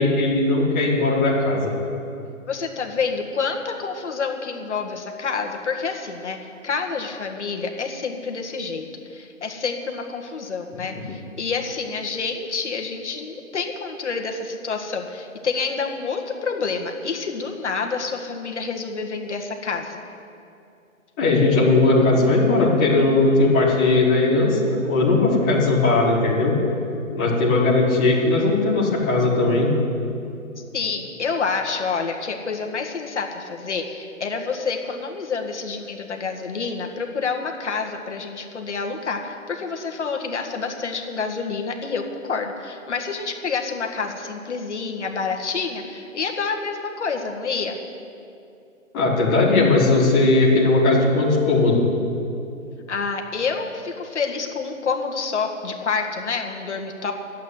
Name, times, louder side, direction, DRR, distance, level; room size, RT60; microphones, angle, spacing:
voice 1, 0.0-1.7 11.0-11.1 21.2-26.5 27.1-29.7 48.9-51.8, left 2 dB, 10° left, -9 dB, 1.2 m, -18 dB
voice 2, 2.5-20.0 30.7-47.8 52.9-57.1, left 5 dB, 55° left, 2 dB, 1.8 m, -28 dB
12.0 x 8.5 x 9.7 m, 2.6 s
hypercardioid pair, 170°, 41 cm